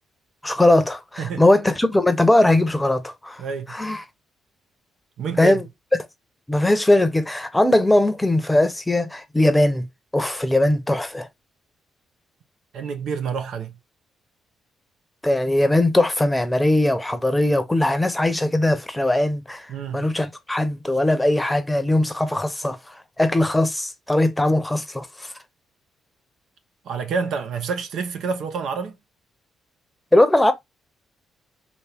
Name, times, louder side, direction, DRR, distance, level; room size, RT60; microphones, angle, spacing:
voice 1, 0.4-3.4 3.7-4.0 5.4-5.6 6.5-9.9 10.1-11.3 15.2-19.7 19.9-25.3 30.1-30.5, left 1 dB, 10° left, 0.9 m, -20 dB
voice 2, 3.4-3.7 5.2-5.6 12.7-13.7 19.7-20.1 26.8-29.0, right 5 dB, 70° right, 0.9 m, -28 dB
4.4 x 2.9 x 3.4 m
cardioid pair, 90°, 0 cm